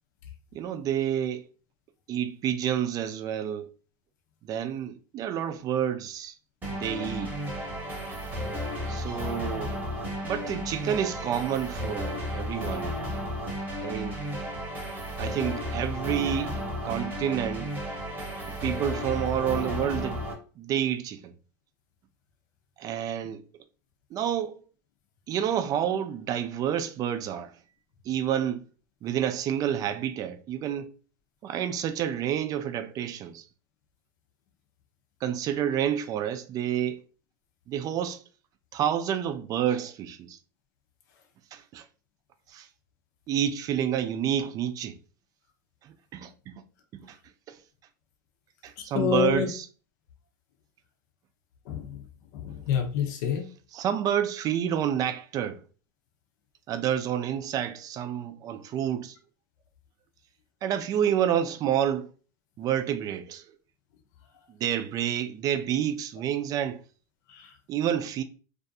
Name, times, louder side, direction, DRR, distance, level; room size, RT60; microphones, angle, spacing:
voice 1, 0.5-1.4 2.1-3.7 4.4-6.3 6.7-7.3 8.9-9.8 10.2-12.9 13.8-14.2 15.2-16.5 16.8-17.7 18.6-20.2 20.6-21.3 22.8-23.4 24.1-24.6 25.3-27.5 28.1-28.7 29.0-30.9 31.4-33.4 35.2-37.0 37.7-38.2 38.7-40.4 41.5-41.9 42.5-42.7 43.3-45.0 45.8-46.6 46.9-47.2 47.5-47.6 48.6-49.7 53.7-55.6 56.7-59.2 60.6-62.1 62.6-63.5 64.6-66.8 67.7-68.2, right 10 dB, 35° right, 0.3 m, -29 dB
sound 1, 6.6-20.3, equal, 15° right, 0.9 m, -33 dB
voice 2, 48.9-49.5 51.7-52.0 52.3-53.4 67.3-67.5, left 9 dB, 70° left, 0.7 m, -27 dB
2.5 x 2.2 x 2.6 m
supercardioid pair, 110°, 10 cm